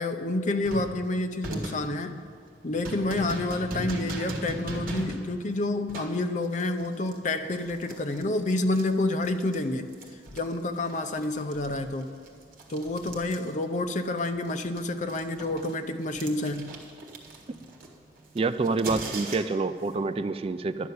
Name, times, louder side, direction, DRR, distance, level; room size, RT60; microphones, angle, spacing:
voice 1, 0.0-2.3 2.6-9.9 10.3-12.1 12.7-16.8, left 2 dB, 40° left, 8 dB, 0.6 m, -29 dB
sound 1, 0.6-9.6 9.9-13.9 14.2-19.7, right 2 dB, 50° right, 1.5 m, -39 dB
voice 2, 18.3-20.9, right 3 dB, 30° right, 11 dB, 0.3 m, -27 dB
11.0 x 6.7 x 9.3 m, 2.1 s
head